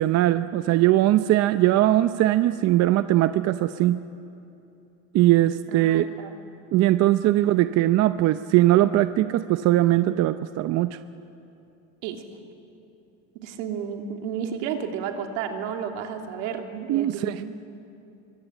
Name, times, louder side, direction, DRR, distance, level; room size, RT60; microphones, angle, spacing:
voice 1, 0.0-4.0 5.1-6.1 6.7-11.0 16.9-17.4, right 14 dB, 45° right, 11 dB, 0.7 m, -20 dB
voice 2, 5.7-6.4 12.0-12.2 13.3-17.4, right 7 dB, 75° right, 3 dB, 3.1 m, -32 dB
25.5 x 23.5 x 9.0 m, 2.8 s
supercardioid pair, 130°, 37 cm